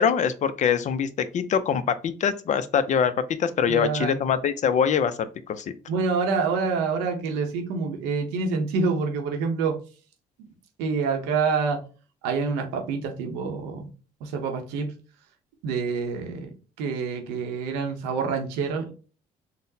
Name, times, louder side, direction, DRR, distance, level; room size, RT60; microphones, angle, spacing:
voice 1, 0.0-3.1 3.4-5.7, left 7 dB, 45° left, 13 dB, 0.4 m, -24 dB
voice 2, 3.7-4.2 5.9-9.8 10.8-11.8 12.2-13.9 14.2-14.9 15.6-16.5 16.8-18.9, right 4 dB, 90° right, 4 dB, 0.7 m, -27 dB
3.8 x 2.0 x 2.6 m, 0.36 s
supercardioid pair, 80°, 17 cm